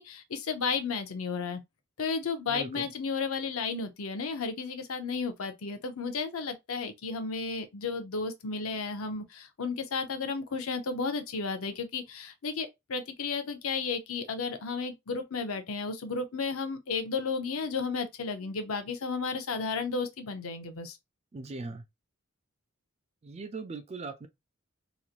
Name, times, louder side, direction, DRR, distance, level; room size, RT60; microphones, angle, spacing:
voice 1, 0.0-1.6 2.0-21.0, left 4 dB, 80° left, 0.6 m, -33 dB
voice 2, 2.5-2.9 21.3-21.8 23.2-24.3, right 3 dB, 30° right, 0.3 m, -39 dB
3.1 x 2.5 x 2.4 m
head